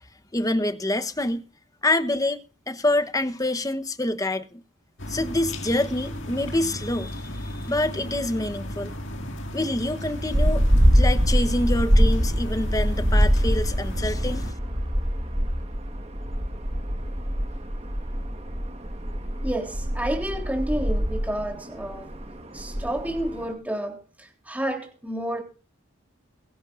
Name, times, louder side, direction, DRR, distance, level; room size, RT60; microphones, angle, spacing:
voice 1, 0.3-1.4 1.8-4.6 5.1-8.9 9.5-14.5, left 1 dB, 15° left, 1.0 m, -26 dB
sound 1, 5.0-14.5, left 1 dB, 60° left, 2.0 m, -35 dB
Musical instrument, 10.0-15.7, left 1 dB, 70° right, 3.0 m, -38 dB
sound 2, 10.3-23.5, equal, 30° right, 1.5 m, -24 dB
voice 2, 19.4-22.1 22.5-25.4, right 1 dB, 5° right, 3.4 m, -30 dB
22.5 x 11.0 x 2.6 m
head